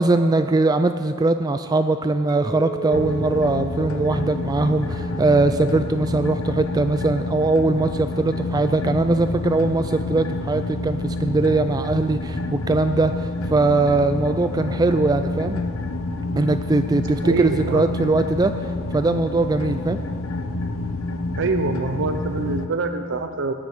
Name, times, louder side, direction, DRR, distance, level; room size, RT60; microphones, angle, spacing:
voice 1, 0.0-15.6 16.3-20.0, right 2 dB, 15° right, 9 dB, 0.3 m, -21 dB
Chink clink, 2.3-7.5, right 7 dB, 75° right, 2.2 m, -37 dB
sound 1, 2.9-22.7, left 2 dB, 65° left, 0.9 m, -28 dB
voice 2, 17.2-17.9 21.4-23.5, right 3 dB, 55° right, 7 dB, 0.7 m, -25 dB
18.5 x 10.0 x 6.6 m, 2.3 s
head